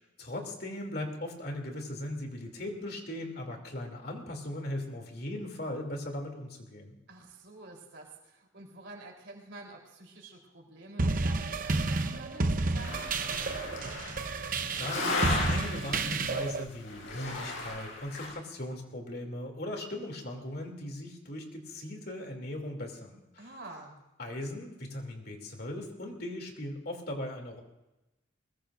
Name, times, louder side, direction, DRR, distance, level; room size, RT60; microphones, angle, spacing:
voice 1, 0.2-6.9 14.4-23.5 24.2-27.6, left 1 dB, 50° left, 2 dB, 2.7 m, -38 dB
voice 2, 7.1-13.8 23.4-24.0, right 2 dB, 65° right, 0 dB, 3.6 m, -49 dB
sound 1, 11.0-16.6, right 3 dB, 45° right, 0.8 m, -30 dB
sound 2, 12.8-16.4 16.8-18.3, left 2 dB, 85° left, 6.0 m, -35 dB
21.0 x 21.0 x 2.6 m, 0.99 s
head